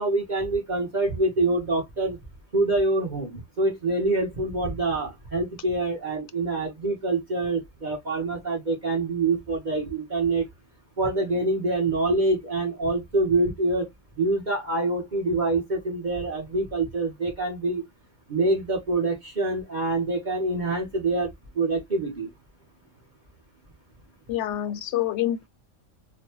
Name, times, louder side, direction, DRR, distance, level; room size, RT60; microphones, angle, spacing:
voice 1, 0.0-2.2 2.5-10.5 11.0-13.9 14.2-17.8 18.3-22.3, right 2 dB, 40° right, 1.2 m, -25 dB
voice 2, 24.3-25.5, left 12 dB, 70° left, 0.9 m, -27 dB
4.0 x 2.2 x 3.0 m
omnidirectional pair, 1.3 m